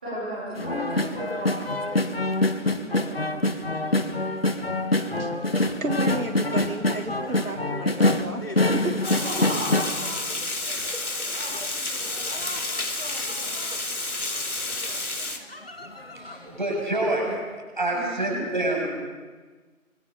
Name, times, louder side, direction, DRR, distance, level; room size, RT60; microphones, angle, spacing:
voice 1, 0.0-1.7 2.4-3.2 9.2-9.9 11.1-11.4 17.9-18.4, equal, 5° right, -13 dB, 3.7 m, -34 dB
sound 1, 0.6-10.9 11.3-13.8 14.3-14.4 14.7-15.0 15.5-16.4 16.8-16.9, left 2 dB, 45° left, 1.7 m, -26 dB
voice 2, 5.2-9.2, right 2 dB, 75° right, 6 dB, 2.2 m, -33 dB
Water, 9.0-15.4, left 2 dB, 80° left, 4.2 m, -30 dB
voice 3, 16.1-17.3 17.8-18.9, right 2 dB, 35° right, 0 dB, 7.8 m, -26 dB
25.5 x 25.0 x 6.9 m, 1.4 s
figure-of-eight pair, 180°, 42 cm